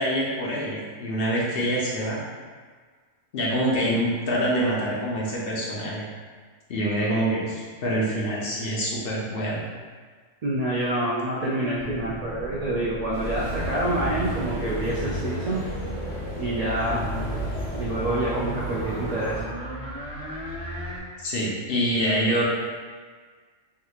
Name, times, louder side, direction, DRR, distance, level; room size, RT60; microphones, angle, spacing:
voice 1, 0.0-2.2 3.3-6.0 6.7-9.6 21.2-22.5, equal, 55° left, -5 dB, 0.7 m, -25 dB
voice 2, 10.4-15.6 16.4-17.0 17.7-19.4, right 1 dB, 80° right, -7 dB, 0.3 m, -27 dB
sound 1, 11.7-21.0, left 1 dB, 35° right, 1.3 m, -35 dB
sound 2, 13.1-19.4, right 2 dB, 75° left, 1.6 m, -34 dB
3.5 x 2.9 x 2.4 m, 1.5 s
omnidirectional pair, 1.3 m